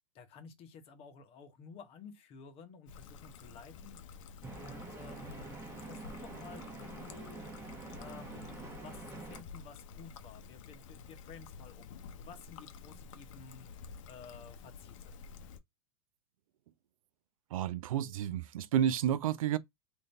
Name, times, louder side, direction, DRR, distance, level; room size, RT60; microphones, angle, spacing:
voice 1, 0.1-7.4 7.9-15.2, left 5 dB, 35° left, 1.0 m, -53 dB
Trickle dribble, 2.9-15.6, left 5 dB, 70° left, 0.7 m, -51 dB
sound 1, 4.4-9.4, right 3 dB, 15° right, 1.0 m, -46 dB
voice 2, 17.5-19.6, right 10 dB, 90° right, 0.4 m, -31 dB
3.8 x 2.6 x 3.2 m
supercardioid pair, 135°, 17 cm